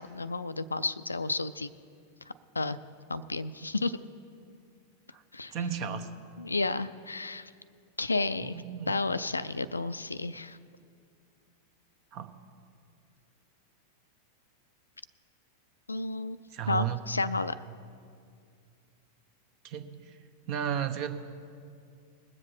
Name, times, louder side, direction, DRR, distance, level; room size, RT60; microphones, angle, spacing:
voice 1, 0.0-1.7 2.5-2.8 3.1-4.0 5.3-5.5 6.4-7.5 8.0-8.6 8.9-10.6 15.9-16.4 16.7-17.5, left 3 dB, 80° left, 14 dB, 0.4 m, -31 dB
voice 2, 5.5-6.1 8.4-9.0 12.1-12.3 16.5-17.0 19.6-19.9 20.5-21.1, right 9 dB, 40° right, 9 dB, 0.9 m, -33 dB
21.0 x 7.6 x 4.3 m, 2.3 s
figure-of-eight pair, 90°, 0 cm